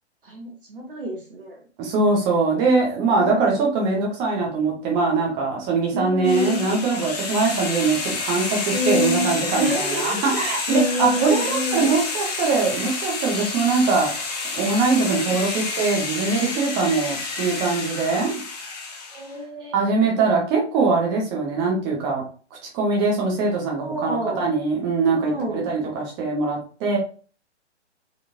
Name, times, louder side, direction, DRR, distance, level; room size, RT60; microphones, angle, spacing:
voice 1, 0.2-1.6 3.1-3.7 5.9-6.7 8.7-12.0 14.8-15.4 19.1-19.7 23.8-24.5 25.1-25.7, equal, 50° right, -1 dB, 1.2 m, -28 dB
voice 2, 1.8-14.1 14.5-18.4 19.7-22.2 22.7-27.0, right 4 dB, 10° right, -1 dB, 0.6 m, -22 dB
sound 1, 6.2-19.3, left 4 dB, 35° left, 0.9 m, -29 dB
4.0 x 2.9 x 2.6 m, 0.38 s
figure-of-eight pair, 125°, 35 cm